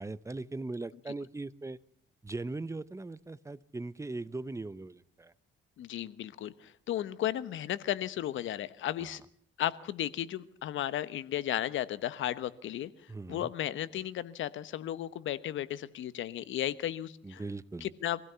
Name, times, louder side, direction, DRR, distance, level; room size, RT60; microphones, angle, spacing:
voice 1, 0.0-1.8 2.2-5.3 9.0-9.2 13.1-13.5 17.2-17.9, right 2 dB, 15° right, 17 dB, 0.9 m, -39 dB
voice 2, 5.8-9.2 9.6-12.9 13.3-17.4 17.8-18.2, left 12 dB, 75° left, 15 dB, 1.1 m, -34 dB
23.5 x 16.5 x 7.0 m, 0.62 s
cardioid pair, 90°, 20 cm